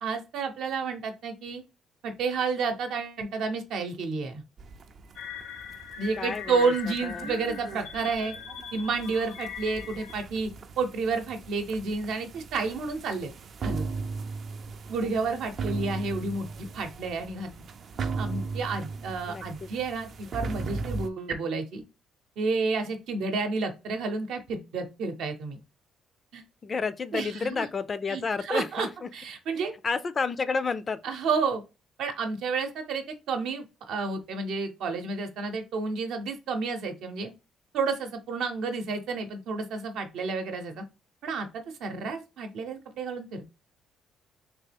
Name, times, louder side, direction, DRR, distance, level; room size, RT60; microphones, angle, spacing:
voice 1, 0.0-1.6 2.0-4.4 6.0-8.3 8.7-10.5 10.8-13.3 13.6-13.9 14.9-17.5 18.2-21.8 22.4-25.6 26.3-26.4 27.1-27.7 28.1-28.9 29.1-29.7 31.0-31.6 32.0-37.3 37.7-40.8 41.2-43.5, right 4 dB, 75° right, 0.8 m, -30 dB
sound 1, 4.6-21.1, right 4 dB, 50° right, 0.4 m, -38 dB
sound 2, 5.2-10.2, left 7 dB, 85° left, 0.6 m, -40 dB
voice 2, 6.2-6.7 7.0-7.3 19.3-19.7 26.6-29.1 29.8-31.0, left 4 dB, 30° left, 0.3 m, -30 dB
3.3 x 3.0 x 3.3 m
cardioid pair, 110°, 0 cm